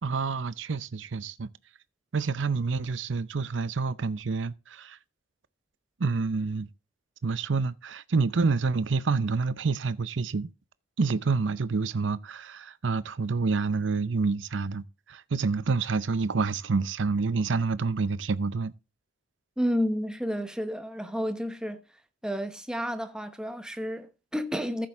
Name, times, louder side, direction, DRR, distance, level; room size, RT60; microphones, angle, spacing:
voice 1, 0.0-1.5 2.1-5.0 6.0-6.7 7.2-10.5 11.0-18.7, right 4 dB, 70° right, 0.6 m, -28 dB
voice 2, 19.6-21.8 22.2-24.9, equal, 5° right, 1.0 m, -31 dB
14.5 x 7.5 x 3.5 m
head